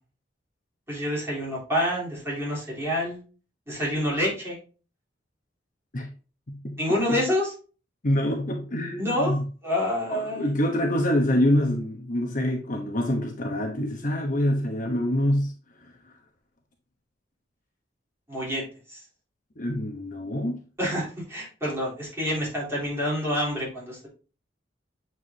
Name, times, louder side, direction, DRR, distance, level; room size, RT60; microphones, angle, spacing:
voice 1, 0.9-3.2 3.7-4.6 6.8-7.5 9.0-10.5 18.3-19.0 20.8-24.1, equal, 15° right, 3.5 m, -28 dB
voice 2, 8.0-9.4 10.1-15.5 19.6-20.6, left 1 dB, 45° left, 1.0 m, -25 dB
7.8 x 4.7 x 2.8 m
head